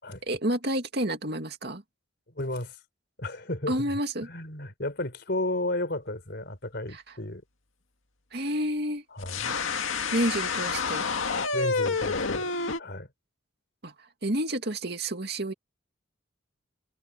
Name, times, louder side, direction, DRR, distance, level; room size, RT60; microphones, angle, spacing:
voice 1, 0.3-1.8 3.7-4.3 6.9-7.0 8.3-9.0 10.1-11.1 13.8-15.5, right 1 dB, 55° right, 2.5 m, -29 dB
voice 2, 2.3-2.8 3.2-3.9 4.2-7.4 9.1-9.5 11.5-12.5 12.8-13.1, left 1 dB, 55° left, 4.3 m, -33 dB
sound 1, 9.2-12.8, left 4 dB, 85° left, 2.1 m, -28 dB
head